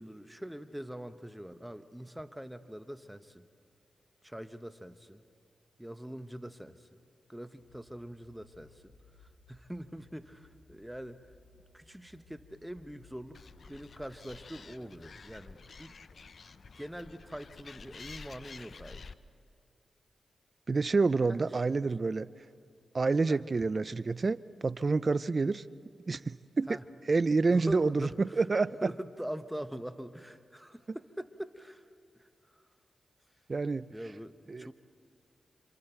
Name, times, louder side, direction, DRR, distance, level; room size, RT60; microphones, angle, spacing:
voice 1, 0.0-3.5 4.2-5.2 5.8-7.0 7.3-11.3 11.7-15.9 16.8-19.1 21.3-21.7 23.3-23.4 26.7-26.8 27.5-28.4 28.8-31.9 32.1-32.6 33.9-34.7, equal, 5° right, 1.0 m, -43 dB
sound 1, 7.6-15.2, left 2 dB, 90° left, 3.4 m, -62 dB
Animal, 13.3-19.1, left 4 dB, 60° left, 0.6 m, -50 dB
voice 2, 20.7-22.3 22.9-25.6 26.1-26.8 27.1-28.7 30.9-31.0 33.5-33.9 34.5-34.7, right 3 dB, 45° right, 0.5 m, -28 dB
27.5 x 26.5 x 4.5 m
supercardioid pair, 40°, 0 cm